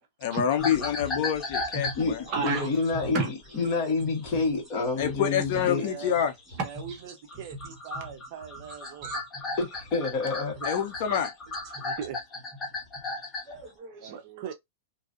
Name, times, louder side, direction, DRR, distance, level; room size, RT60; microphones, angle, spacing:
voice 1, 0.2-2.3 5.0-6.3 10.6-11.3, left 9 dB, 50° left, 0.6 m, -27 dB
sound 1, 0.6-7.0 7.3-13.6, left 2 dB, 15° left, 1.4 m, -36 dB
voice 2, 1.9-3.7 6.6-7.2 7.4-7.5 8.6-8.8 9.0-9.6 11.6-11.8 13.5-14.2 14.5-14.6, right 4 dB, 30° right, 1.1 m, -35 dB
voice 3, 2.4-3.3 3.5-5.9 9.6-10.8, left 3 dB, 30° left, 1.7 m, -28 dB
voice 4, 5.7-6.2 6.6-9.1 10.5-10.7 11.1-11.2 11.8-12.2 14.0-14.5, right 8 dB, 45° right, 0.6 m, -41 dB
3.0 x 2.6 x 2.5 m
supercardioid pair, 160°, 0 cm